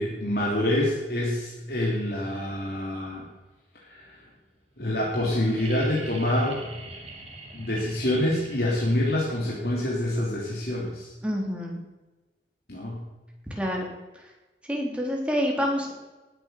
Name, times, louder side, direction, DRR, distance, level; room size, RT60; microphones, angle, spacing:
voice 1, 0.0-3.3 3.8-4.2 4.8-6.7 7.5-11.1 12.7-13.0, left 1 dB, 60° left, -3 dB, 3.3 m, -26 dB
sound 1, 5.6-9.3 11.1-11.2, right 2 dB, 35° right, 3.1 m, -43 dB
voice 2, 11.2-11.8 13.5-13.9 14.1-14.3 14.7-15.9, equal, 5° right, -1 dB, 3.6 m, -27 dB
19.5 x 9.0 x 6.9 m, 1.1 s
head